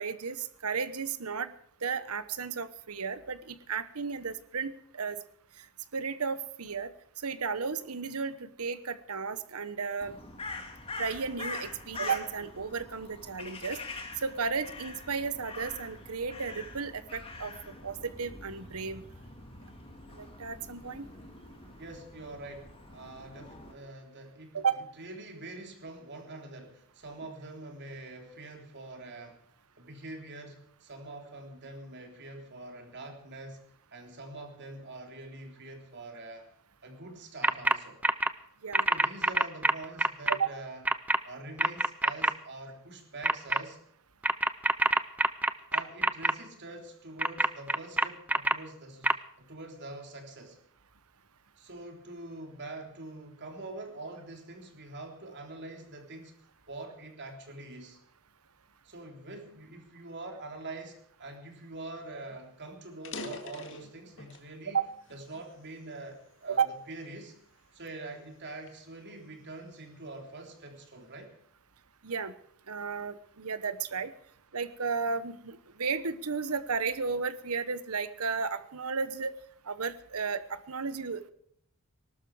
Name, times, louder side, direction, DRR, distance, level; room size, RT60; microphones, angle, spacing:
voice 1, 0.0-1.5 1.8-5.2 5.6-5.7 5.9-6.9 7.2-10.2 11.0-13.8 14.2-19.0 20.1-21.1 24.5-24.8 38.6-38.9 40.3-40.5 64.7-64.9 66.5-66.7 72.0-72.3 72.7-74.1 74.5-79.3 79.6-81.3, right 5 dB, 75° right, 14 dB, 1.1 m, -33 dB
Crow, 10.0-23.7, left 3 dB, 25° left, 2.2 m, -44 dB
voice 2, 21.8-29.4 29.8-33.7 33.9-36.5 36.8-38.0 38.9-40.8 41.2-43.8 45.7-49.1 49.4-50.6 51.6-56.3 56.7-58.0 58.8-64.8 65.1-67.3 67.7-71.3, right 2 dB, 50° right, 3 dB, 3.5 m, -45 dB
sound 1, 37.4-37.8 38.0-38.3 38.7-40.4 40.9-41.2 41.6-42.3 43.2-43.6 44.2-46.3 47.2-48.5 49.0-49.1, right 2 dB, 5° right, 0.5 m, -25 dB
sound 2, 61.9-62.0 62.3-62.4 62.9-64.5 65.0-66.3 66.9-67.2 67.8-69.8, left 2 dB, 60° left, 2.1 m, -45 dB
19.0 x 12.5 x 4.9 m, 0.66 s
head